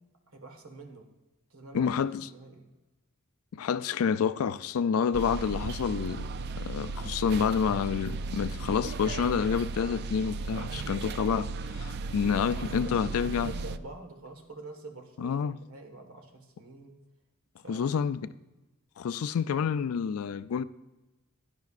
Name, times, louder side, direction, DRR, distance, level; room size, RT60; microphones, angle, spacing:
voice 1, 0.3-1.1 1.5-1.9 2.3-2.7 12.3-16.9 17.6-17.9 18.2-18.4, right 2 dB, 80° right, 1.6 m, -46 dB
voice 2, 1.7-2.3 3.5-6.3 6.6-11.5 11.8-13.5 15.2-15.6 17.7-18.2 19.0-20.6, left 7 dB, 90° left, 0.4 m, -28 dB
sound 1, 5.1-13.8, right 3 dB, 50° right, 0.3 m, -36 dB
16.5 x 10.5 x 2.5 m
head